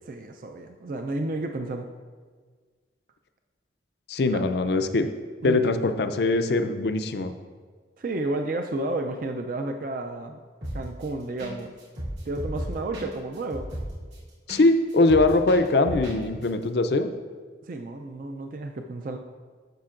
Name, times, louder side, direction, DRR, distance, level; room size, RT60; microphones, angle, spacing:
voice 1, 0.1-1.9 4.3-4.4 5.4-5.7 8.0-10.4 10.7-11.7 12.3-13.7 17.6-19.2, right 2 dB, 50° right, 5 dB, 0.4 m, -31 dB
voice 2, 4.1-5.1 5.4-7.3 14.5-17.1, left 2 dB, 65° left, 9 dB, 0.5 m, -22 dB
sound 1, 10.6-11.0 11.4-11.5 11.8-14.6 14.9-16.2 16.4-16.5, equal, 80° right, 2.2 m, -34 dB
11.5 x 6.7 x 2.5 m, 1.5 s
head